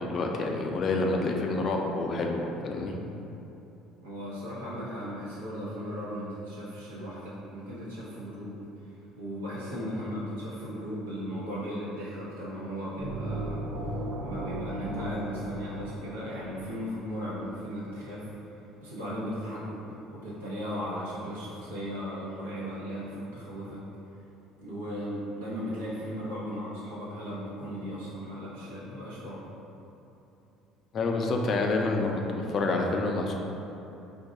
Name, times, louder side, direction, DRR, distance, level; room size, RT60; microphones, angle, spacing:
voice 1, 0.0-3.0 30.9-33.4, left 3 dB, 45° left, 1 dB, 0.4 m, -28 dB
voice 2, 4.0-8.6 9.2-13.7 14.2-18.3 18.8-23.8 24.6-29.4, equal, 85° right, -8 dB, 0.8 m, -36 dB
sound 1, 13.0-16.8, right 1 dB, 55° right, 0.3 m, -36 dB
2.5 x 2.3 x 3.9 m, 3.0 s
hypercardioid pair, 65°, 0 cm